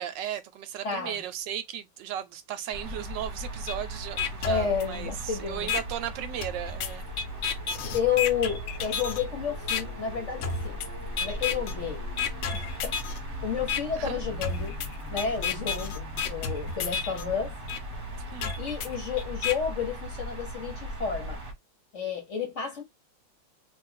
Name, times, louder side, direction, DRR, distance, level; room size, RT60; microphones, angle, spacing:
voice 1, 0.0-7.1 14.0-14.2 18.3-18.6, right 10 dB, 75° right, 1.2 m, -36 dB
voice 2, 0.8-1.2 4.4-5.7 7.9-10.8 11.2-12.1 12.5-13.0 13.4-14.8 15.1-17.5 18.6-21.4 21.9-22.8, left 7 dB, 50° left, 1.1 m, -31 dB
sound 1, 2.7-21.5, equal, 35° right, 1.2 m, -38 dB
sound 2, 3.7-3.8 4.2-5.2 5.7-5.8 6.4-9.2 9.7-9.8 10.4-10.9 11.2-11.7 12.2-13.2 13.7-13.8 14.4-17.2 17.7-17.8 18.4-19.5, left 6 dB, 75° left, 1.3 m, -31 dB
Singing, 5.2-20.0, left 2 dB, 10° left, 0.6 m, -50 dB
3.1 x 2.5 x 3.7 m
omnidirectional pair, 2.0 m